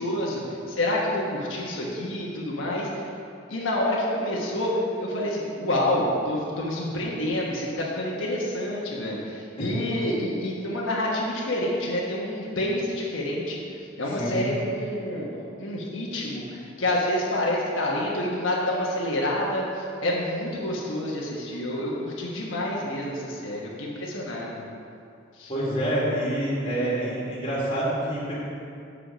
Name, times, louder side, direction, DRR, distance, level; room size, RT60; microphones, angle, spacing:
voice 1, 0.0-2.9 3.5-4.7 5.0-13.6 14.0-15.3 15.6-24.7 25.4-25.5, left 1 dB, 85° left, -4 dB, 1.2 m, -28 dB
voice 2, 14.1-14.5 25.5-28.3, right 1 dB, 30° left, -7 dB, 1.9 m, -27 dB
7.3 x 5.1 x 5.1 m, 2.5 s
head